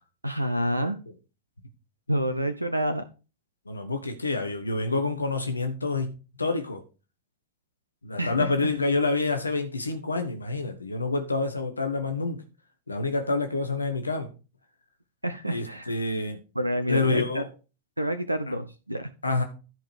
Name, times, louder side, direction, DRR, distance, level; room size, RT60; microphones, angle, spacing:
voice 1, 0.2-1.0 2.1-3.0 8.2-8.7 15.2-15.9 16.6-17.4 18.0-19.1, equal, 85° right, 9 dB, 0.6 m, -28 dB
voice 2, 3.7-6.8 8.0-12.4 12.9-14.3 15.5-16.4 16.9-17.5 18.5-18.6 19.2-19.4, left 3 dB, 80° left, 7 dB, 1.2 m, -28 dB
11.0 x 5.1 x 4.8 m, 0.32 s
figure-of-eight pair, 90°, 0 cm